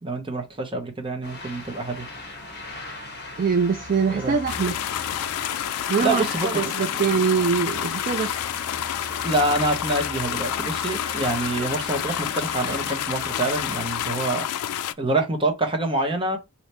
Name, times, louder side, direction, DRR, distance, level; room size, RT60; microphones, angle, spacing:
voice 1, 0.0-2.1 4.1-4.4 6.0-7.0 9.2-14.5 15.0-16.4, right 2 dB, 25° right, 0.9 m, -26 dB
sound 1, 1.2-14.1, left 2 dB, 50° left, 1.2 m, -38 dB
voice 2, 3.4-4.7 5.9-8.3 9.1-9.2, right 5 dB, 40° right, 0.4 m, -23 dB
sound 2, 4.5-14.9, left 11 dB, 80° left, 0.3 m, -29 dB
3.2 x 2.8 x 4.2 m
head